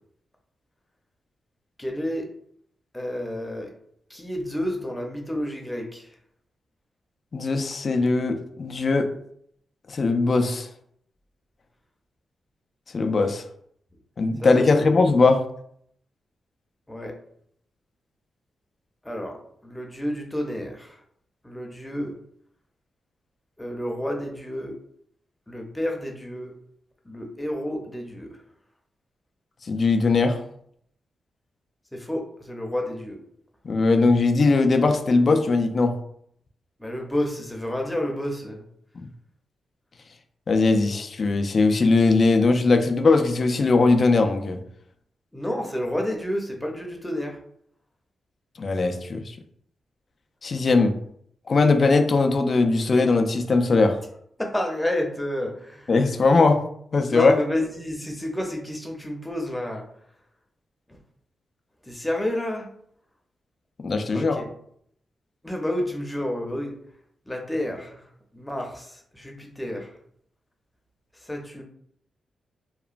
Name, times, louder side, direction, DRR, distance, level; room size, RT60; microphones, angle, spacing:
voice 1, 1.8-2.3 2.9-3.7 4.1-6.1 14.4-14.9 16.9-17.1 19.0-21.0 21.4-22.2 23.6-24.8 25.5-26.5 27.0-28.4 31.9-33.2 36.8-38.7 45.3-47.4 54.4-55.9 57.1-59.9 60.9-61.0 61.8-62.7 64.1-64.5 65.4-66.7 67.3-68.1 68.3-70.0 71.1-71.6, left 1 dB, 10° left, 1 dB, 0.6 m, -30 dB
voice 2, 7.3-9.1 9.9-10.7 12.9-13.4 14.2-15.4 29.7-30.4 33.7-36.0 40.5-44.6 48.6-49.2 50.4-51.0 51.5-54.0 55.9-56.6 56.9-57.3 63.8-64.4, left 3 dB, 50° left, 6 dB, 0.3 m, -20 dB
2.9 x 2.1 x 2.4 m, 0.67 s
cardioid pair, 70°, 0 cm